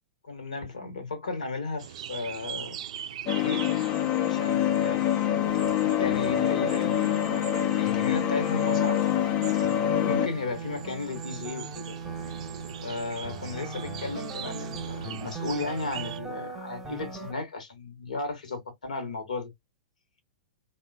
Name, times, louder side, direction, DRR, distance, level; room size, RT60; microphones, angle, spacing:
voice 1, 0.2-2.8 3.3-3.6 4.2-5.2 5.5-9.0 10.0-11.9 12.8-19.5, left 3 dB, 75° left, 0.9 m, -35 dB
sound 1, 1.8-16.2, right 7 dB, 60° right, 0.4 m, -42 dB
sound 2, 3.3-10.3, left 11 dB, 35° left, 0.4 m, -25 dB
sound 3, 5.4-17.3, right 4 dB, 5° right, 0.9 m, -40 dB
3.0 x 2.1 x 2.2 m
figure-of-eight pair, 105°, 4 cm